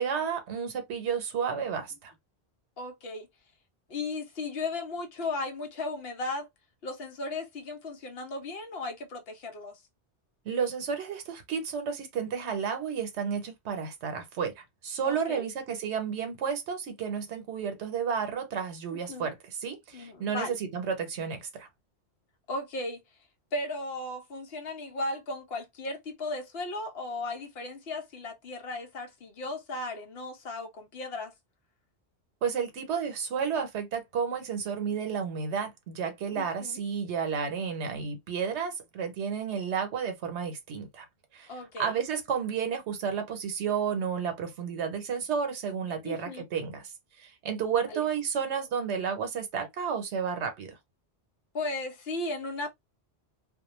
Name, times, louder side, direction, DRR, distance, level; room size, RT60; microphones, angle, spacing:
voice 1, 0.0-2.1 10.5-21.7 32.4-41.1 41.3-41.5 41.8-46.9 47.2-50.8, right 6 dB, 85° right, 1.0 m, -32 dB
voice 2, 2.8-3.3 3.9-6.5 6.8-9.8 15.0-15.4 18.9-19.3 19.9-20.6 22.5-23.0 23.5-31.3 36.4-36.8 41.5-41.9 46.0-46.4 47.9-48.1 51.5-52.7, left 2 dB, 65° left, 1.0 m, -36 dB
2.3 x 2.2 x 2.9 m
omnidirectional pair, 1.1 m